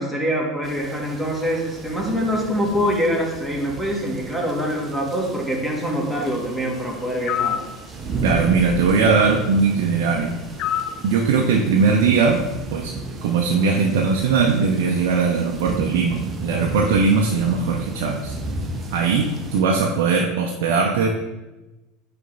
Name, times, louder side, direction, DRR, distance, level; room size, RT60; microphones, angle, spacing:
voice 1, 0.0-7.6, equal, ahead, -3 dB, 1.9 m, -24 dB
sound 1, 0.6-19.6, right 3 dB, 30° right, 0.9 m, -34 dB
sound 2, 7.3-7.7 10.6-11.0, left 10 dB, 50° left, 0.4 m, -24 dB
voice 2, 8.2-10.4 11.0-12.4 12.7-12.9 13.2-18.4 18.9-21.1, right 5 dB, 65° right, 1 dB, 0.7 m, -19 dB
9.1 x 3.4 x 4.0 m, 1.1 s
figure-of-eight pair, 75°, 0 cm